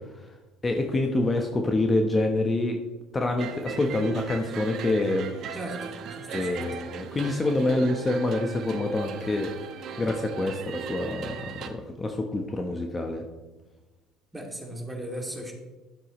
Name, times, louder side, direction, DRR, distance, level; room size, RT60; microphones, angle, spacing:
voice 1, 0.6-2.8 3.1-5.3 6.3-9.5 10.0-13.2, left 2 dB, 25° left, 3 dB, 1.1 m, -26 dB
sound 1, 3.4-11.7, right 6 dB, 55° right, 1.0 m, -38 dB
voice 2, 5.5-6.8 14.3-15.5, right 1 dB, 10° right, 0 dB, 2.6 m, -37 dB
12.0 x 7.5 x 3.1 m, 1.2 s
hypercardioid pair, 70°, 0 cm